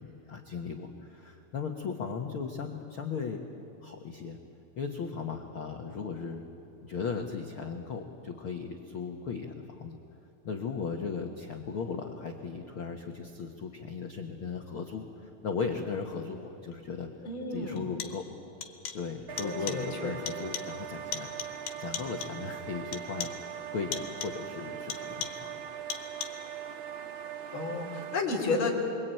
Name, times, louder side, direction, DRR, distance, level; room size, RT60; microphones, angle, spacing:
voice 1, 0.0-3.4 3.8-4.4 4.8-6.4 6.8-10.0 10.4-17.1 17.5-18.3 18.9-23.3 23.7-25.6, left 5 dB, 60° left, 2 dB, 1.4 m, -37 dB
sound 1, 16.7-16.8 17.8-18.3 18.6-19.1 19.4-19.9 20.3-20.8 21.1-22.5 22.9-23.5 23.9-24.5 24.9-25.5 25.9-26.5, left 8 dB, 75° left, 3.3 m, -40 dB
voice 2, 17.2-17.8 19.4-20.1 27.5-28.7, left 3 dB, 35° left, -2 dB, 4.6 m, -32 dB
sound 2, 19.3-28.2, right 9 dB, 50° right, 1.5 m, -41 dB
28.5 x 23.0 x 9.1 m, 2.8 s
omnidirectional pair, 4.2 m